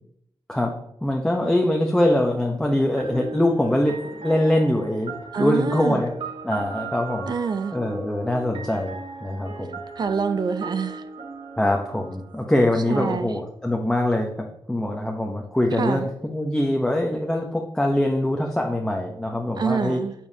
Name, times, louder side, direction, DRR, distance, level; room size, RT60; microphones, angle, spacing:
voice 1, 1.0-6.1 6.4-7.3 7.7-9.8 11.6-20.0, left 1 dB, 5° left, 1 dB, 0.8 m, -23 dB
sound 1, 3.0-12.8, right 3 dB, 70° right, 1.2 m, -37 dB
voice 2, 5.3-6.0 7.3-7.7 10.0-11.0 12.9-13.3 15.8-16.1 19.6-20.1, right 5 dB, 50° right, 10 dB, 0.6 m, -26 dB
11.0 x 7.0 x 2.8 m, 0.76 s
wide cardioid pair, 120°, 9 cm